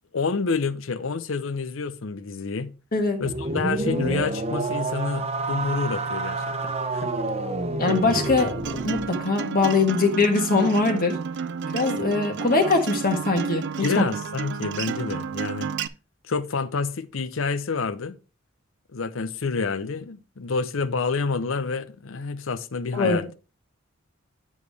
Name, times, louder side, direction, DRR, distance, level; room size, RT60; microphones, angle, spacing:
voice 1, 0.1-2.7 3.2-7.1 13.8-15.7 16.2-18.1 18.9-23.3, left 4 dB, 70° left, 0.7 m, -28 dB
sound 1, 3.2-9.1, right 2 dB, 30° right, 1.0 m, -28 dB
voice 2, 7.8-11.2 11.7-14.0 22.9-23.2, left 3 dB, 45° left, 1.4 m, -22 dB
Acoustic guitar, 7.9-15.9, right 6 dB, 60° right, 0.5 m, -32 dB
8.3 x 7.3 x 3.4 m
head